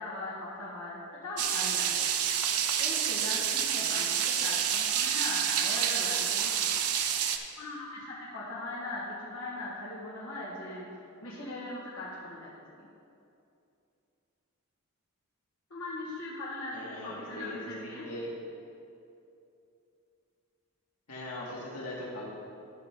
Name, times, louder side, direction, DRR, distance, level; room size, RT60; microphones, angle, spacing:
voice 1, 0.0-2.0 2.8-6.7 7.6-10.9 11.2-12.5 12.8-12.9 15.7-18.1, left 2 dB, 65° left, -8 dB, 1.7 m, -39 dB
sound 1, 1.4-7.4, right 9 dB, 85° right, 0.6 m, -28 dB
voice 2, 16.7-17.7 18.0-18.3 21.1-22.3, left 1 dB, 90° left, -5 dB, 2.3 m, -40 dB
13.0 x 5.9 x 3.8 m, 2.7 s
head